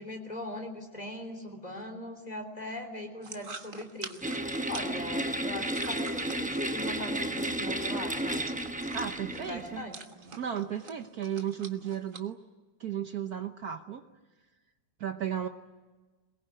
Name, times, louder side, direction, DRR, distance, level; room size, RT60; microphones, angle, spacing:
voice 1, 0.0-4.2 4.7-8.4 9.3-10.0, left 1 dB, 20° left, 5 dB, 3.6 m, -40 dB
sound 1, 3.2-12.2, right 4 dB, 30° right, 1.3 m, -48 dB
sound 2, 4.2-9.8, right 1 dB, 15° right, 0.3 m, -33 dB
voice 2, 8.9-9.9 10.4-12.4 12.8-14.0 15.0-15.5, right 9 dB, 60° right, 7 dB, 1.3 m, -34 dB
23.0 x 20.5 x 9.8 m, 1.3 s
omnidirectional pair, 2.0 m